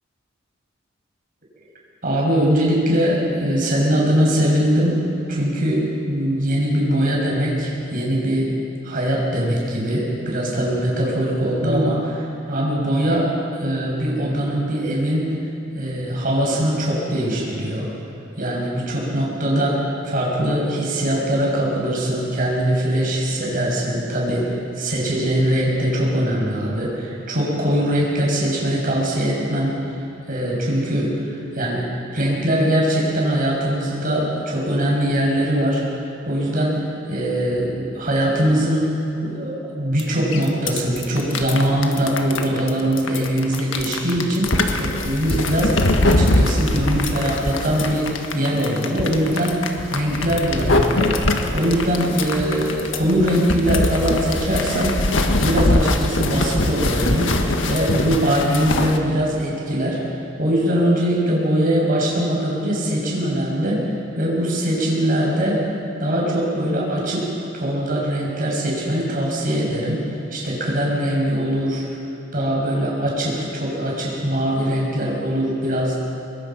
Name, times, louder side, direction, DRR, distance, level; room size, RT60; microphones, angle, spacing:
voice 1, 2.0-5.0 5.3-8.5 8.8-15.3 15.7-17.9 18.4-29.7 30.3-31.2 31.5-31.8 32.1-35.8 36.2-36.8 37.1-38.9 39.2-45.7 46.0-49.6 49.9-51.2 51.5-55.0 55.4-57.3 57.7-60.0 60.4-63.8 64.2-65.6 66.0-67.3 67.5-71.9 72.3-76.0, equal, 45° right, -3 dB, 6.9 m, -21 dB
sound 1, 40.0-40.1 40.3-59.0, left 2 dB, 80° left, 1.7 m, -22 dB
25.0 x 22.0 x 6.0 m, 3.0 s
head